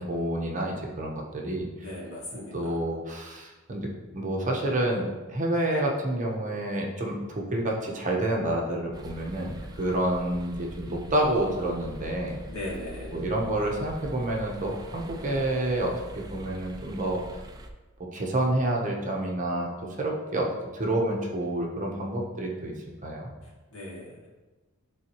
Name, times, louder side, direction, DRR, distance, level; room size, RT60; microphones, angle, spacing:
voice 1, 0.0-1.7 2.5-3.9 4.1-12.4 13.1-17.2 18.1-19.7 20.0-22.7 23.0-23.3, right 1 dB, 35° right, -1 dB, 1.0 m, -28 dB
voice 2, 1.8-2.8 12.5-13.2 23.4-24.3, left 1 dB, 75° left, -6 dB, 2.3 m, -38 dB
sound 1, 8.9-17.7, right 1 dB, 20° right, 0.4 m, -43 dB
11.0 x 3.9 x 3.0 m, 1.2 s
head